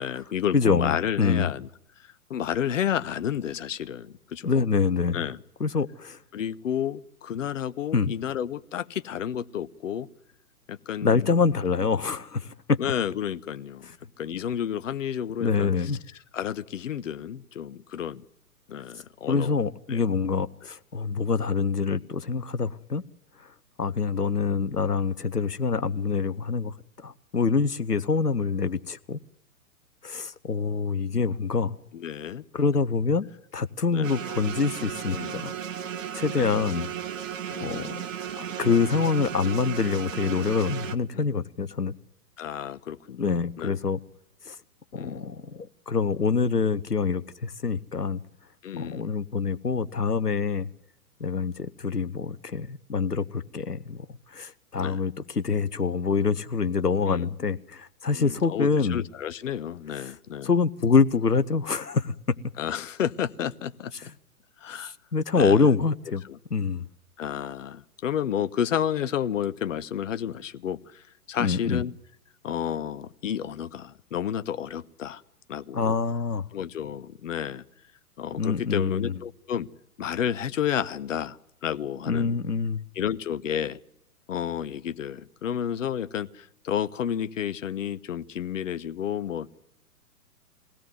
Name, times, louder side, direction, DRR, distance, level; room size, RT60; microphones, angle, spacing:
voice 1, 0.0-1.7 2.0-4.7 5.1-5.4 6.3-10.1 10.7-11.5 11.8-11.9 12.8-13.9 14.2-15.7 16.3-18.2 18.7-19.6 19.9-20.0 31.9-32.4 33.9-34.1 35.1-35.4 36.3-36.6 37.5-38.0 41.1-41.3 42.4-43.8 44.9-45.2 48.6-49.1 54.8-55.0 57.0-57.3 58.1-60.5 62.6-64.1 64.6-64.9 65.3-65.7 66.3-66.4 67.2-71.9 72.4-75.2 75.5-76.0 76.5-77.6 78.2-79.7 80.0-82.4 83.0-83.8 84.3-89.5, left 9 dB, 55° left, 1.0 m, -31 dB
voice 2, 0.5-1.5 4.4-5.2 5.6-6.2 7.9-8.1 11.0-12.8 15.4-16.0 19.3-23.0 23.8-29.2 30.0-31.7 32.5-33.3 33.5-35.5 36.1-36.9 37.6-38.0 38.4-41.9 43.2-44.0 44.5-44.6 44.9-48.2 48.8-50.7 51.2-54.1 54.3-59.0 60.0-60.1 60.4-62.4 64.7-66.2 66.5-66.8 71.4-71.8 75.7-76.4 78.4-79.1 82.1-82.8, left 5 dB, 90° left, 0.9 m, -25 dB
sound 1, 34.0-40.9, right 9 dB, 55° right, 1.3 m, -35 dB
22.5 x 17.0 x 9.5 m
figure-of-eight pair, 120°, 46 cm